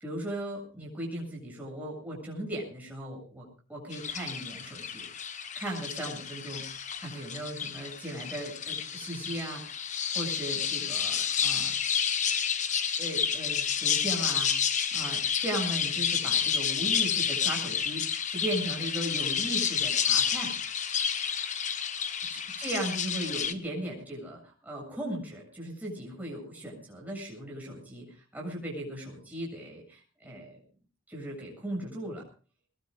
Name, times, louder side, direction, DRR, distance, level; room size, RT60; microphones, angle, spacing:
voice 1, 0.0-5.1 5.3-9.6 10.1-11.7 13.0-14.6 14.9-20.5 22.3-30.6 31.1-32.2, right 1 dB, 10° right, -2 dB, 7.4 m, -37 dB
sound 1, 3.9-23.5, left 7 dB, 35° left, 1.1 m, -30 dB
23.0 x 20.5 x 2.5 m, 0.39 s
head